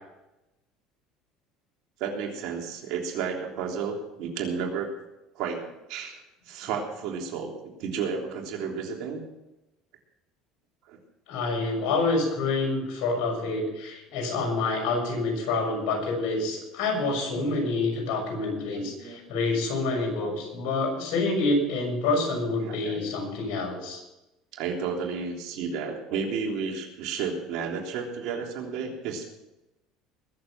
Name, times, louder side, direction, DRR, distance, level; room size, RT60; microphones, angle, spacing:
voice 1, 2.0-4.9 5.3-5.6 5.9-7.5 7.8-9.3 10.9-11.0 15.0-15.1 17.3-17.6 18.7-19.2 20.1-20.4 22.6-23.0 24.5-29.2, right 6 dB, 65° right, 1 dB, 3.4 m, -32 dB
voice 2, 11.3-24.0, left 3 dB, 70° left, 1 dB, 6.4 m, -27 dB
21.5 x 7.5 x 6.0 m, 0.96 s
supercardioid pair, 105°, 0 cm